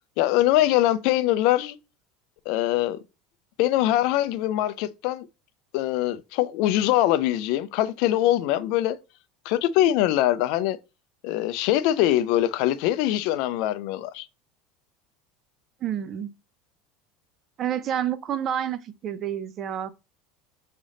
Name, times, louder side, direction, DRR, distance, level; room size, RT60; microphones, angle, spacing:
voice 1, 0.2-1.8 2.5-3.0 3.6-5.3 5.7-9.0 9.5-10.8 11.2-14.3, left 14 dB, 55° left, 0.4 m, -23 dB
voice 2, 15.8-16.3 17.6-19.9, right 9 dB, 30° right, 0.4 m, -29 dB
3.7 x 3.4 x 4.0 m
cardioid pair, 160°, 0 cm